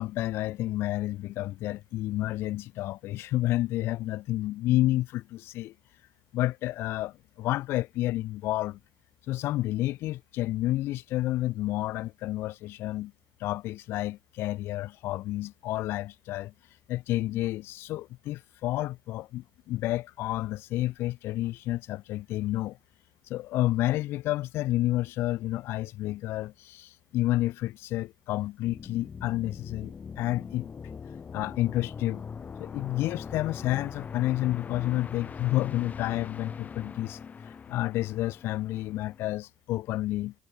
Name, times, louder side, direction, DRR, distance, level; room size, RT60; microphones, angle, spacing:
voice 1, 0.0-5.7 6.3-8.8 9.3-13.1 13.4-16.5 16.9-22.8 23.3-30.7 31.3-32.2 32.6-37.2 37.5-40.3, left 16 dB, 80° left, 0.9 m, -30 dB
sound 1, 28.6-39.4, left 6 dB, 40° left, 1.1 m, -41 dB
cardioid pair, 80°, 4 cm